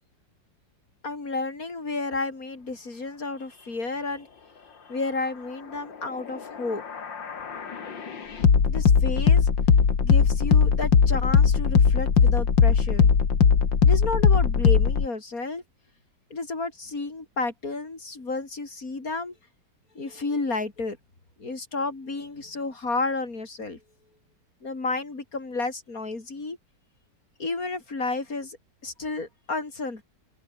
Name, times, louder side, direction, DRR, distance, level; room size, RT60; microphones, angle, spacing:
voice 1, 1.0-4.3 4.9-6.8 8.6-9.5 10.0-13.1 13.8-15.6 16.3-19.3 19.9-21.0 21.4-23.8 24.6-26.6 27.4-28.6 28.8-30.0, left 3 dB, 50° left, 4.6 m, -31 dB
sound 1, 6.4-15.1, left 6 dB, 85° left, 3.0 m, -20 dB
omnidirectional pair, 2.0 m